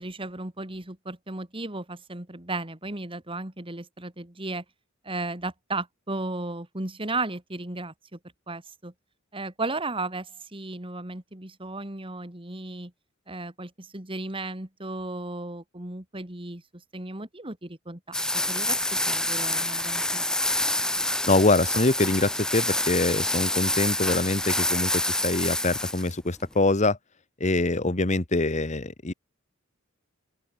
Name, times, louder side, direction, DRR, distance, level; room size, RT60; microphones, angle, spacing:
voice 1, 0.0-4.6 5.0-8.2 8.5-8.9 9.3-12.9 13.3-20.3, right 2 dB, 25° right, 2.4 m, -35 dB
sound 1, 18.1-26.1, left 1 dB, 5° left, 0.6 m, -27 dB
voice 2, 21.3-27.0 27.4-29.1, left 2 dB, 35° left, 1.2 m, -24 dB
open air
head